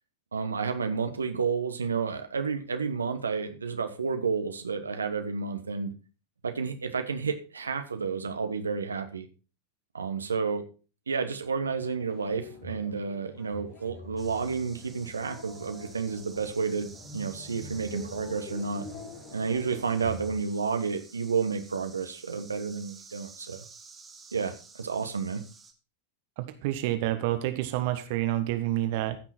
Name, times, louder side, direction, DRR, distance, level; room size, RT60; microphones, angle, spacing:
voice 1, 0.3-5.9 6.4-9.3 9.9-10.6 11.1-18.8 19.3-23.6 24.3-25.4, right 5 dB, 75° right, 7 dB, 1.2 m, -31 dB
sound 1, 11.7-20.4, left 2 dB, 40° left, 1.9 m, -46 dB
sound 2, 14.2-25.7, right 4 dB, 15° right, 1.9 m, -52 dB
voice 2, 26.4-29.2, right 14 dB, 50° right, 9 dB, 1.2 m, -28 dB
15.0 x 6.1 x 4.4 m, 0.35 s
figure-of-eight pair, 90°, 0 cm